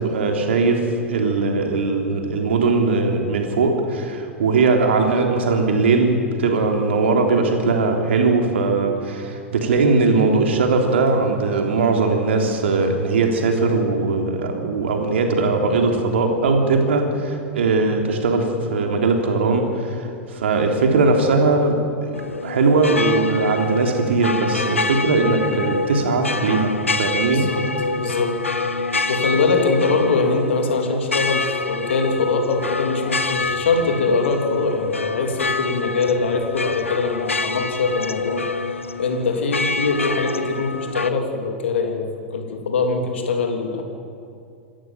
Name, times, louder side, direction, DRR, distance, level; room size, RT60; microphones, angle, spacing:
voice 1, 0.0-27.5, right 3 dB, 65° right, 3 dB, 3.5 m, -20 dB
sound 1, 22.1-41.1, left 3 dB, 85° left, 0.8 m, -26 dB
voice 2, 27.3-27.7 28.0-28.8 29.1-38.4 39.0-42.1 42.3-43.8, left 4 dB, 65° left, 4 dB, 3.3 m, -23 dB
27.0 x 14.0 x 9.0 m, 2.4 s
figure-of-eight pair, 95°, 7 cm